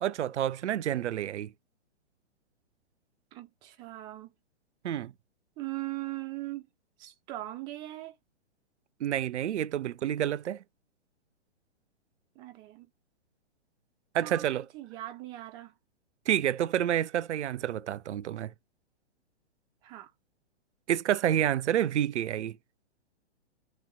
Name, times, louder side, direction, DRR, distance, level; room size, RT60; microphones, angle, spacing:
voice 1, 0.0-1.5 4.8-5.1 9.0-10.6 14.1-14.7 16.3-18.5 20.9-22.6, right 11 dB, 80° right, 0.5 m, -29 dB
voice 2, 3.3-4.3 5.6-6.7 7.0-8.1 12.4-12.9 14.2-14.5 14.7-15.7 19.8-20.1, right 17 dB, 15° right, 0.3 m, -39 dB
3.1 x 3.0 x 3.6 m
hypercardioid pair, 120°, 34 cm